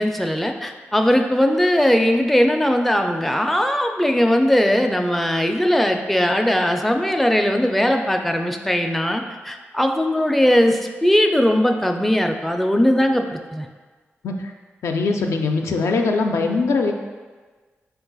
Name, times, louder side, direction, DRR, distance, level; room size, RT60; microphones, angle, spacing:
voice 1, 0.0-13.7, equal, 5° left, 4 dB, 0.4 m, -19 dB
voice 2, 14.8-16.9, left 3 dB, 85° left, 3 dB, 0.4 m, -21 dB
4.3 x 2.3 x 3.9 m, 1.4 s
cardioid pair, 60°, 5 cm